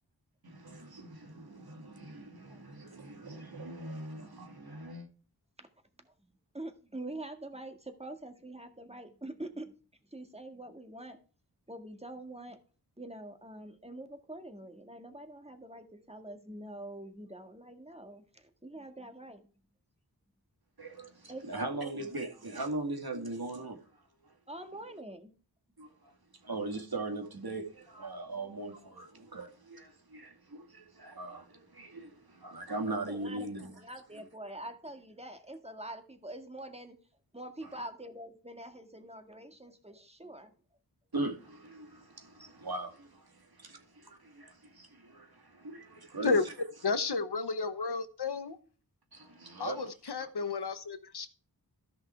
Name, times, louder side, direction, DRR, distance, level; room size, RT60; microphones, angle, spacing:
voice 1, 0.4-5.1 20.8-23.9 24.2-24.3 25.8-33.8 34.1-34.2 37.6-37.8 41.1-46.4 49.1-49.9 50.2-50.3, right 2 dB, 65° right, 2.4 m, -40 dB
voice 2, 6.5-9.7 10.1-11.2 11.7-12.6 13.0-19.5 21.3-21.8 22.0-22.1 24.5-25.3 32.9-37.0 37.3-40.5, right 1 dB, 15° right, 1.9 m, -45 dB
voice 3, 46.8-48.6 49.6-51.3, left 4 dB, 85° left, 1.1 m, -32 dB
13.5 x 5.8 x 4.5 m
wide cardioid pair, 45°, 39 cm